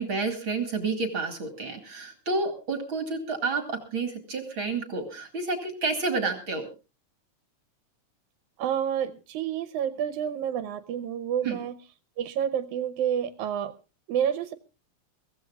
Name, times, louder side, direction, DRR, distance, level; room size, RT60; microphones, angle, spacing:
voice 1, 0.0-6.7 11.4-11.6, right 3 dB, 45° right, 6 dB, 2.7 m, -30 dB
voice 2, 8.6-11.8 12.2-13.7 14.1-14.5, right 9 dB, 80° right, 11 dB, 2.3 m, -29 dB
23.5 x 16.0 x 2.4 m, 0.31 s
omnidirectional pair, 3.4 m